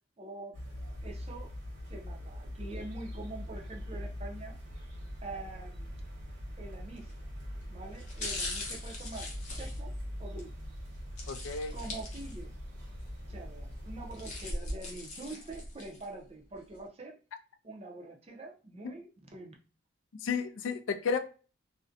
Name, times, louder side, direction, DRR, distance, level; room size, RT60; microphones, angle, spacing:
voice 1, 0.2-0.6 1.0-1.5 1.9-4.5 5.2-5.9 6.6-7.1 7.7-9.9 10.2-10.5 11.7-12.5 13.3-17.2 17.6-19.5, right 2 dB, 30° right, 1 dB, 0.4 m, -45 dB
sound 1, 0.5-14.5, equal, 65° right, 1.0 m, -42 dB
sound 2, 7.0-7.3 7.9-10.5 11.2-12.6 13.0-13.1 13.9-16.1 16.5-16.6, left 2 dB, 35° left, 0.6 m, -40 dB
voice 2, 11.3-11.7 20.2-21.2, left 5 dB, 80° left, 8 dB, 0.3 m, -32 dB
2.5 x 2.1 x 2.4 m, 0.36 s
head